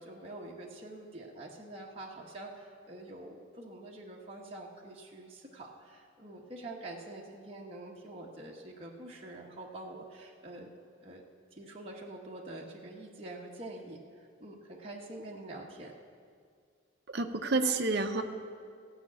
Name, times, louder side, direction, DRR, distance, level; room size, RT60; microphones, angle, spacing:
voice 1, 0.0-10.7 11.0-11.2 11.5-15.9, right 2 dB, 30° right, -3 dB, 1.2 m, -46 dB
voice 2, 17.1-18.2, right 3 dB, 55° right, 5 dB, 0.8 m, -29 dB
15.0 x 5.9 x 8.5 m, 2.1 s
head